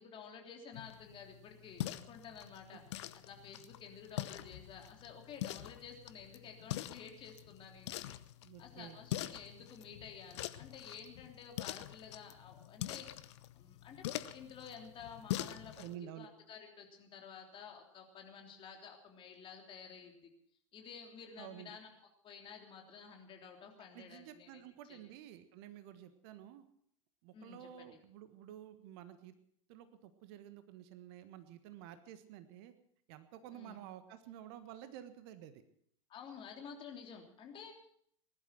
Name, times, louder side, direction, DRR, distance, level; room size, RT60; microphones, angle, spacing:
voice 1, 0.0-2.8 3.1-8.0 8.6-13.1 13.5-15.8 16.2-20.3 20.7-21.9 22.2-24.6 24.9-25.0 27.3-27.7 33.5-33.8 36.1-37.7, left 6 dB, 30° left, 2 dB, 3.4 m, -52 dB
sound 1, 0.7-16.0, left 14 dB, 55° left, 0.9 m, -44 dB
voice 2, 8.4-9.0 15.7-16.3 21.4-21.8 23.9-26.6 27.2-29.3 29.7-32.7 33.1-35.6, right 11 dB, 50° right, 10 dB, 1.5 m, -51 dB
19.5 x 12.0 x 6.0 m, 0.67 s
figure-of-eight pair, 90°, 17 cm